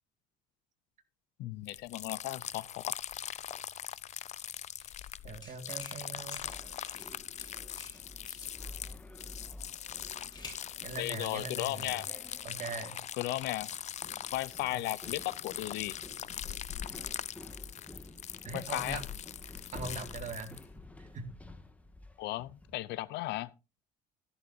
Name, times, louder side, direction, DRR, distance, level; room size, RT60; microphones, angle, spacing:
voice 1, 1.4-2.8 11.0-12.1 13.2-13.7 14.3-15.9 18.5-19.0 22.2-23.5, left 17 dB, 85° left, 0.6 m, -35 dB
sound 1, 1.7-20.7, left 10 dB, 45° left, 0.5 m, -42 dB
sound 2, 4.8-5.1 5.4-6.1 6.3-7.1 7.4-8.6 9.6-10.7, left 3 dB, 25° left, 6.5 m, -50 dB
voice 2, 5.2-6.4 10.8-12.0 12.4-13.0 14.7-14.8 18.4-19.0 19.5-20.6 21.0-21.3, right 4 dB, 45° right, 2.1 m, -41 dB
sound 3, 6.4-22.9, left 2 dB, 10° left, 1.9 m, -51 dB
14.5 x 11.5 x 2.7 m
cardioid pair, 110°, 17 cm